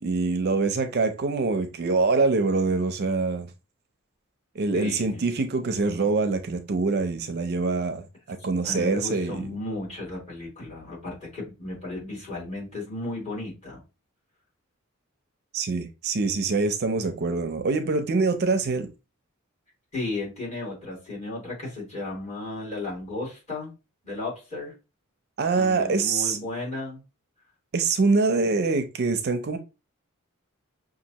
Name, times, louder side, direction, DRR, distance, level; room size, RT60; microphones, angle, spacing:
voice 1, 0.0-3.5 4.6-8.0 8.3-9.5 15.5-18.9 25.4-26.4 27.7-29.6, right 3 dB, 50° right, 0.5 m, -24 dB
voice 2, 4.7-5.3 8.6-13.8 19.9-23.7 24.0-24.7 25.5-27.0, left 2 dB, 35° left, 2.6 m, -34 dB
6.2 x 2.5 x 2.8 m
head